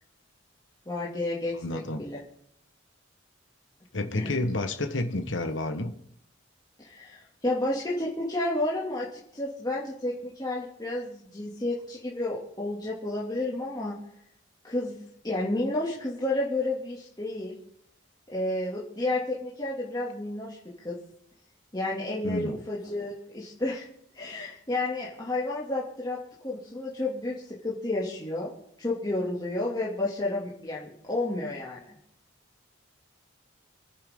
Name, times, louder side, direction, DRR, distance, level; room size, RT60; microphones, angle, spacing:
voice 1, 0.9-2.2 4.1-4.3 6.8-13.9 14.6-17.5 18.3-21.0 21.7-23.8 24.1-26.2 26.4-28.5 28.8-32.0, left 2 dB, 20° left, -6 dB, 2.5 m, -31 dB
voice 2, 1.5-2.0 3.9-5.9 22.2-22.6, left 2 dB, 70° left, 7 dB, 1.3 m, -30 dB
27.5 x 10.0 x 3.8 m, 0.73 s
head